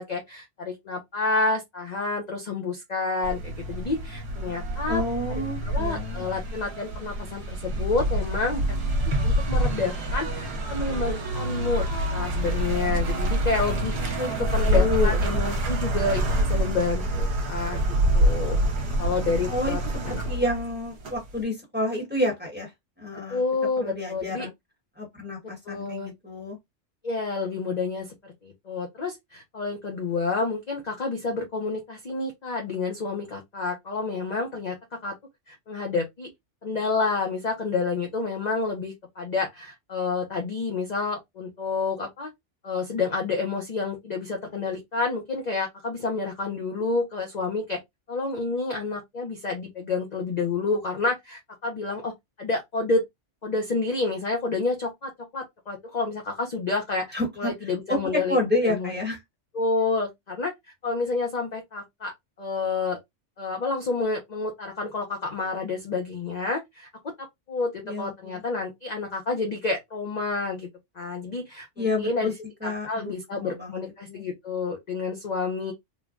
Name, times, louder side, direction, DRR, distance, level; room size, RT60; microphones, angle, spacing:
voice 1, 0.0-5.0 5.6-8.8 9.2-11.8 12.1-17.8 18.1-18.6 19.0-19.8 20.1-20.2 23.1-24.5 25.7-26.1 27.0-34.7 35.0-35.1 35.5-36.3 36.6-42.3 42.6-47.8 48.1-52.1 52.4-53.0 53.4-58.4 58.6-58.9 59.5-60.5 60.8-62.1 62.4-63.0 63.4-66.9 67.5-70.7 71.0-72.3 72.6-75.7, left 3 dB, 45° left, 0.6 m, -29 dB
sound 1, 3.2-21.4, right 1 dB, 65° right, 1.1 m, -26 dB
voice 2, 4.9-6.2 14.2-15.2 19.5-19.8 20.1-22.7 23.0-23.4 23.8-24.5 25.0-26.6 57.1-57.5 57.9-59.2 67.8-68.4 71.8-72.3 72.6-73.8 74.1-74.2, left 1 dB, 10° right, 1.1 m, -29 dB
3.1 x 2.2 x 2.4 m
omnidirectional pair, 1.2 m